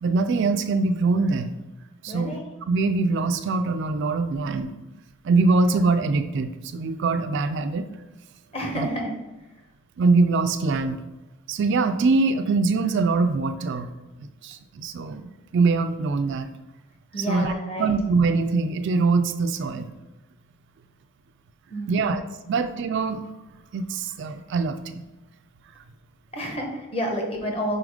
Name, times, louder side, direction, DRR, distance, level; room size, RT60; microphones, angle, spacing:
voice 1, 0.0-1.5 2.0-2.4 2.7-4.7 5.2-7.9 8.7-8.9 10.0-11.0 11.5-13.9 14.2-16.5 17.2-17.5 17.8-19.9 21.9-22.2 22.5-23.3 23.7-25.0, right 3 dB, 55° right, 9 dB, 0.3 m, -23 dB
voice 2, 2.1-2.5 8.5-9.1 17.1-17.9 21.7-22.2 22.5-22.6 26.3-27.8, equal, 25° left, 1 dB, 1.0 m, -30 dB
5.0 x 4.3 x 4.8 m, 1.1 s
head